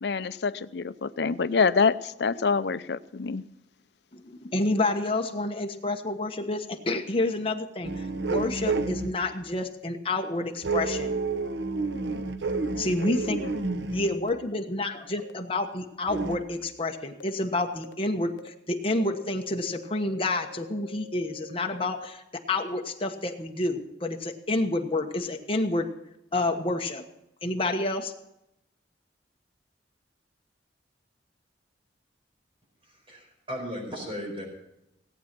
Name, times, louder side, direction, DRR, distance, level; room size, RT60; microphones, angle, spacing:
voice 1, 0.0-3.4, left 5 dB, 65° left, 14 dB, 0.5 m, -26 dB
voice 2, 4.1-11.2 12.8-13.4 13.9-25.9 26.3-27.0 27.4-28.1, left 2 dB, 30° left, 3 dB, 1.2 m, -29 dB
sound 1, 7.8-9.2 10.6-14.2 16.1-16.4, right 3 dB, 70° right, 0.9 m, -30 dB
sound 2, 13.2-13.3 14.2-14.3 15.2-15.3 16.2-16.3 17.2-17.3 17.8-17.9 18.4-18.5 18.9-22.0, left 5 dB, 90° left, 0.9 m, -46 dB
voice 3, 32.8-34.4, equal, 30° right, 1 dB, 4.9 m, -36 dB
18.0 x 8.8 x 6.0 m, 0.87 s
head